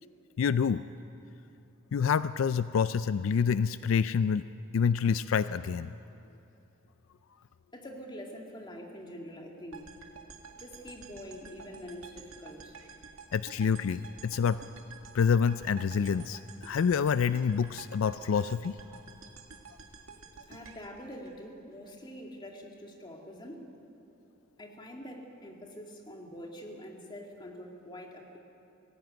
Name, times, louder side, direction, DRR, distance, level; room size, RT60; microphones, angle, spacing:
voice 1, 0.4-0.8 1.9-4.4 4.7-5.9 13.3-14.6 15.1-18.7, left 6 dB, 70° left, 14 dB, 0.4 m, -27 dB
voice 2, 7.7-9.9 10.5-12.7 20.5-23.7 24.6-28.4, equal, 25° left, 1 dB, 2.2 m, -45 dB
sound 1, 9.7-21.9, right 5 dB, 80° right, 1.8 m, -50 dB
19.0 x 15.5 x 9.1 m, 2.9 s
head